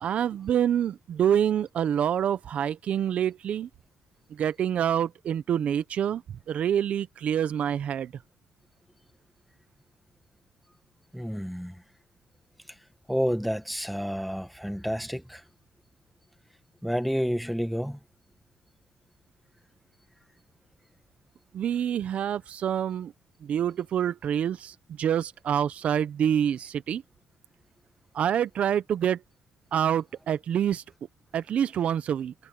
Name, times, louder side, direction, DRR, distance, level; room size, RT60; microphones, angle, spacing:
voice 1, 0.0-3.7 4.3-6.2 6.5-8.1 21.5-23.1 23.4-27.0 28.1-29.2 29.7-30.8 31.3-32.3, right 9 dB, 65° right, 0.7 m, -26 dB
voice 2, 11.1-11.8 13.1-15.4 16.8-18.0, equal, ahead, 1.4 m, -29 dB
cardioid pair, 95°, 2 cm